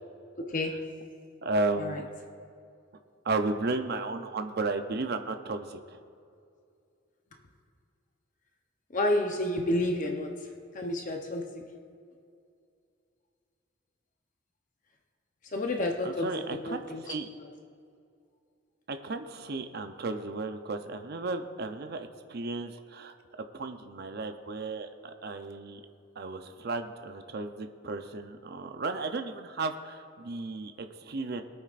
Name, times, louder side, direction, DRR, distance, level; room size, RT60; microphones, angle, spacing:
voice 1, 0.5-0.9 1.8-2.0 8.9-10.5 10.7-11.6 15.5-17.0 17.4-17.5, left 1 dB, 40° left, 2 dB, 0.8 m, -30 dB
voice 2, 1.4-2.1 3.2-6.0 16.0-17.3 18.9-23.2 23.5-25.8 26.2-31.4, right 3 dB, 55° right, 7 dB, 0.6 m, -34 dB
22.5 x 8.7 x 2.5 m, 2.4 s
head